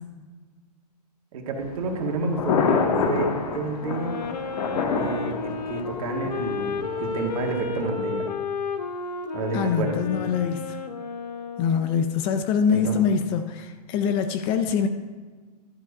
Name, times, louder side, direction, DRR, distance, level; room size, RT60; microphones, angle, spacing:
voice 1, 1.3-4.2 4.9-8.3 9.3-10.3 12.7-13.0, right 3 dB, 55° right, 2 dB, 1.8 m, -30 dB
Thunder, 1.6-7.6, left 5 dB, 65° left, 1.3 m, -28 dB
Wind instrument woodwind instrument, 3.8-12.1, left 4 dB, 85° left, 0.9 m, -32 dB
voice 2, 9.5-10.8 11.6-14.9, left 6 dB, 25° left, 9 dB, 0.4 m, -24 dB
11.5 x 4.8 x 5.3 m, 1.4 s
hypercardioid pair, 140°, 21 cm